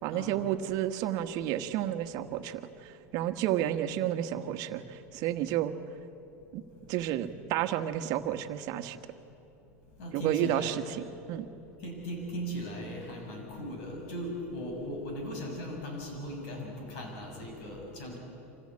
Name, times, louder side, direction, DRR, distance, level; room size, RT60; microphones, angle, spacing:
voice 1, 0.0-5.7 6.5-6.6 6.9-9.0 10.1-11.0 11.3-11.5, right 12 dB, 55° right, 9 dB, 1.3 m, -31 dB
voice 2, 10.0-10.8 11.8-18.2, equal, 65° left, 1 dB, 7.1 m, -38 dB
26.0 x 16.0 x 8.7 m, 2.9 s
supercardioid pair, 115°, 8 cm